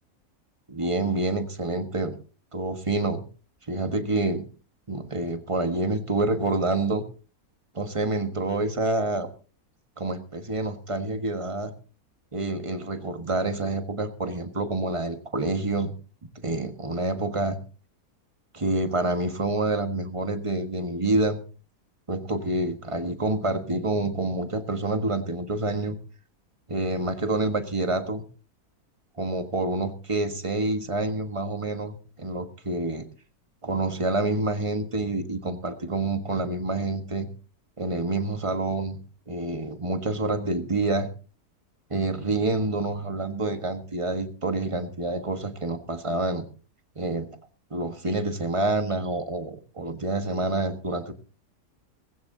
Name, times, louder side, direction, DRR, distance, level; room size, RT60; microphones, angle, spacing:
voice 1, 0.7-2.2 2.5-3.2 3.7-4.4 4.9-7.0 7.7-9.3 10.0-11.7 12.3-15.9 16.4-17.6 18.5-21.4 22.1-26.0 26.7-28.2 29.2-33.1 33.6-37.3 37.8-39.0 39.3-41.1 41.9-46.5 46.9-47.3 47.7-51.1, right 2 dB, 20° right, 7 dB, 1.3 m, -27 dB
19.0 x 16.0 x 2.7 m, 0.37 s
omnidirectional pair, 1.7 m